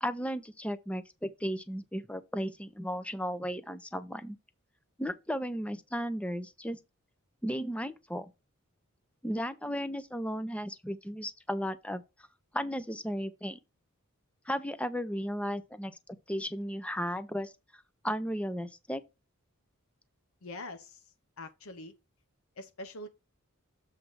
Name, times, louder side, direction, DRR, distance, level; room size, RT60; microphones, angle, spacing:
voice 1, 0.0-4.4 5.0-6.8 7.4-8.3 9.2-12.0 12.5-13.6 14.5-15.9 16.3-17.5 18.0-19.0, equal, 5° left, 0.6 m, -35 dB
voice 2, 20.4-21.9 22.6-23.1, left 2 dB, 70° left, 0.8 m, -44 dB
7.4 x 3.3 x 6.2 m
head